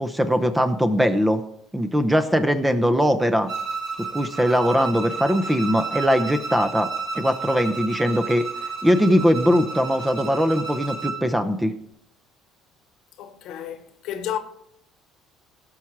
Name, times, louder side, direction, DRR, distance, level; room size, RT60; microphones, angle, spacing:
voice 1, 0.0-1.4 1.7-3.5 4.0-6.9 7.1-8.5 8.8-11.7, equal, 10° right, 0.9 m, -21 dB
Bowed string instrument, 3.5-11.2, right 4 dB, 50° right, 3.5 m, -32 dB
voice 2, 13.2-14.4, left 10 dB, 70° left, 1.2 m, -32 dB
16.0 x 5.9 x 4.8 m
supercardioid pair, 95°, 0 cm